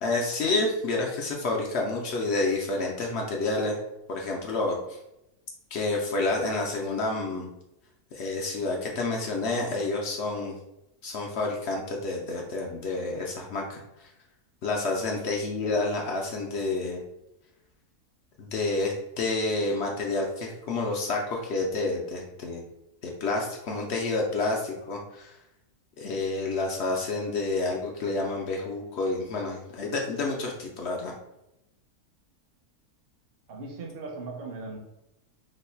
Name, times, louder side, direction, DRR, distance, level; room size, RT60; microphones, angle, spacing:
voice 1, 0.0-3.8 4.1-5.0 5.7-7.5 8.1-10.5 11.0-14.1 14.6-17.0 18.4-22.6 23.0-25.4 26.0-31.1, left 3 dB, 65° left, 0 dB, 0.6 m, -29 dB
voice 2, 33.5-34.8, right 3 dB, 50° right, 0 dB, 0.8 m, -38 dB
3.1 x 2.2 x 4.2 m, 0.90 s
omnidirectional pair, 1.6 m